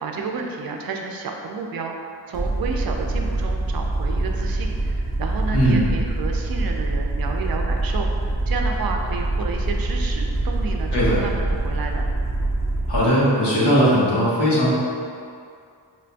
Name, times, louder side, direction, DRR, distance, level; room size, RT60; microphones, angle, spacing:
voice 1, 0.0-12.1, right 4 dB, 55° right, 2 dB, 0.5 m, -31 dB
Aircraft, 2.3-13.0, right 2 dB, 5° left, 1.0 m, -24 dB
voice 2, 5.5-5.9 10.9-11.2 12.9-14.7, equal, 60° left, -8 dB, 1.2 m, -18 dB
4.4 x 2.4 x 2.2 m, 2.3 s
cardioid pair, 60°, 44 cm